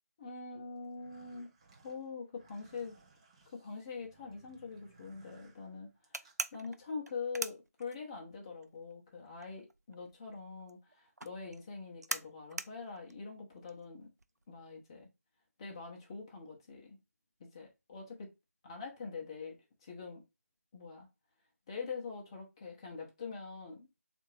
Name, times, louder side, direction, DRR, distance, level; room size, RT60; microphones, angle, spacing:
voice 1, 0.2-1.5 1.8-2.9 3.5-14.1 14.5-15.1 15.6-17.0 17.4-18.3 18.6-20.2 20.7-21.1 21.7-23.9, left 4 dB, 20° left, 0.7 m, -44 dB
sound 1, 0.8-6.5, right 4 dB, 20° right, 0.6 m, -63 dB
sound 2, 6.1-8.4 8.6-14.4, right 2 dB, 85° right, 0.4 m, -41 dB
3.5 x 2.5 x 3.2 m
figure-of-eight pair, 160°, 9 cm